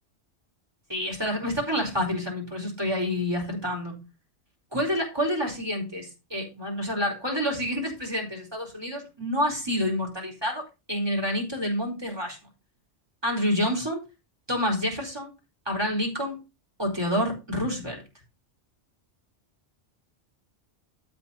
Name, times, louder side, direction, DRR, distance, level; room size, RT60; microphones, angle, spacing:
voice 1, 0.9-4.0 4.7-12.4 13.2-14.0 14.5-15.3 15.7-16.4 16.8-18.0, equal, 20° right, 1 dB, 4.2 m, -28 dB
12.0 x 4.5 x 5.5 m, 0.26 s
omnidirectional pair, 1.2 m